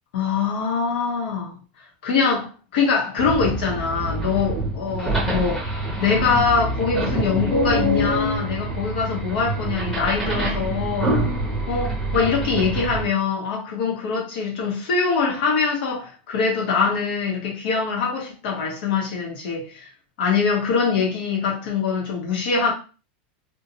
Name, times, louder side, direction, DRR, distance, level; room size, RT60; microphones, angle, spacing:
voice 1, 0.1-1.5 2.0-5.6 6.0-11.2 11.7-19.9 20.2-22.7, left 5 dB, 70° left, 1.3 m, -23 dB
sound 1, 3.2-13.1, right 1 dB, ahead, 1.0 m, -26 dB
2.7 x 2.5 x 2.8 m
supercardioid pair, 150°, 5 cm